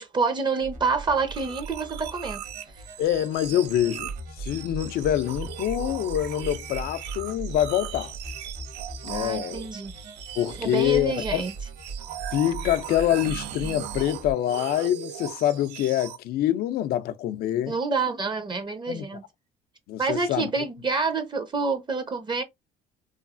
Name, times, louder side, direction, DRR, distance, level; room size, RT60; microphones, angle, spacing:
voice 1, 0.0-2.4 2.8-3.0 9.0-9.9 10.6-11.5 17.7-19.2 20.0-22.4, right 4 dB, 25° right, 0.6 m, -27 dB
sound 1, 0.6-14.3, right 3 dB, 50° right, 1.1 m, -39 dB
sound 2, 1.3-16.2, right 12 dB, 90° right, 0.5 m, -39 dB
voice 2, 3.0-4.1 4.4-8.1 9.0-9.6 10.4-11.5 12.3-17.7 18.9-19.0 19.9-20.5, left 12 dB, 65° left, 0.4 m, -25 dB
3.0 x 2.3 x 2.4 m
cardioid pair, 110°, 17 cm